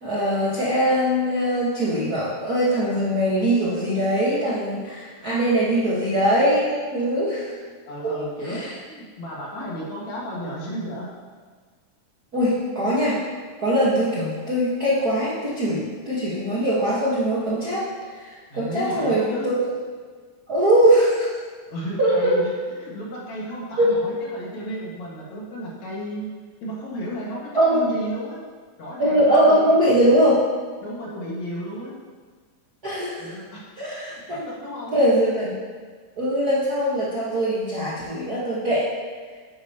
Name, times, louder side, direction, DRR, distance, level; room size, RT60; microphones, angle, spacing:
voice 1, 0.0-7.5 8.0-8.2 8.4-8.7 12.3-13.2 13.6-17.9 18.2-19.7 20.5-21.3 22.0-22.4 23.8-23.9 27.5-27.9 29.0-30.4 32.8-33.3 33.8-34.5 34.9-35.6 36.2-38.9, right 1 dB, 45° right, -9 dB, 1.4 m, -21 dB
voice 2, 5.8-6.2 7.9-11.1 18.5-19.5 21.7-26.3 26.6-28.4 28.8-30.0 30.8-31.9 33.2-33.7 34.0-34.9, equal, 65° left, -5 dB, 2.9 m, -33 dB
9.8 x 9.0 x 2.9 m, 1.6 s
omnidirectional pair, 3.6 m